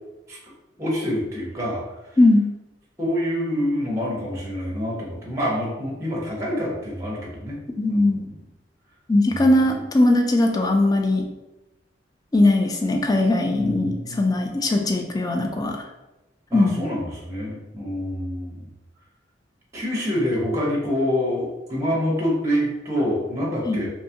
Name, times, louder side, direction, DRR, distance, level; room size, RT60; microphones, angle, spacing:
voice 1, 0.8-1.8 3.0-7.6 7.9-8.3 13.6-14.3 16.5-18.7 19.7-23.9, equal, 15° right, -4 dB, 0.6 m, -26 dB
voice 2, 2.2-2.5 7.8-8.2 9.1-11.3 12.3-15.8 16.5-16.8 23.7-23.8, left 2 dB, 20° left, 3 dB, 0.3 m, -19 dB
2.8 x 2.3 x 2.7 m, 0.99 s
head